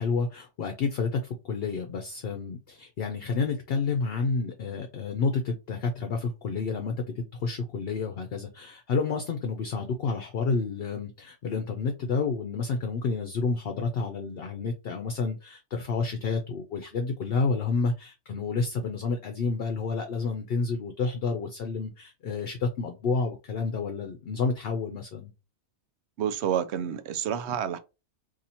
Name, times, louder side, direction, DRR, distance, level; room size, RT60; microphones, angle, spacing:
voice 1, 0.0-25.3, left 4 dB, 60° left, 0.8 m, -30 dB
voice 2, 26.2-27.8, right 9 dB, 70° right, 0.8 m, -29 dB
2.8 x 2.7 x 4.1 m
omnidirectional pair, 1.2 m